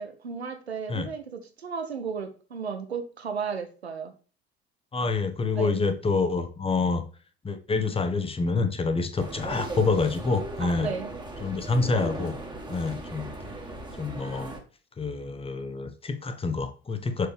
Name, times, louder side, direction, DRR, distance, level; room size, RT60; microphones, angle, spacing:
voice 1, 0.0-4.1 5.5-5.8 10.6-11.1, right 5 dB, 80° right, 8 dB, 0.8 m, -34 dB
voice 2, 4.9-7.0 7.4-10.9 11.4-12.4 12.7-13.3 14.0-14.5 15.0-17.3, left 4 dB, 20° left, 8 dB, 1.1 m, -27 dB
sound 1, 9.2-14.6, right 2 dB, 15° right, 1.7 m, -38 dB
6.3 x 4.7 x 3.3 m, 0.38 s
figure-of-eight pair, 60°, 31 cm